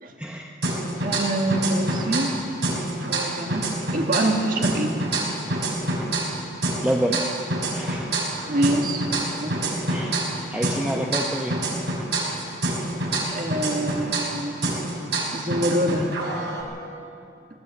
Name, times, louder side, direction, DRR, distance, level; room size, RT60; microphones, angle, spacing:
voice 1, 0.2-0.5 6.8-7.2 7.7-8.1 9.9-10.2 10.5-11.6, equal, 5° right, 0 dB, 0.9 m, -27 dB
sound 1, 0.6-2.4 2.6-6.4 6.6-10.4 10.6-14.4 14.6-16.6, right 2 dB, 65° right, 5.2 m, -26 dB
voice 2, 1.0-2.3 3.1-3.6 3.9-4.9 8.5-9.1 9.4-9.5 13.3-14.6 15.3-16.4, right 1 dB, 45° right, 2 dB, 1.8 m, -25 dB
19.5 x 19.5 x 8.2 m, 2.6 s
head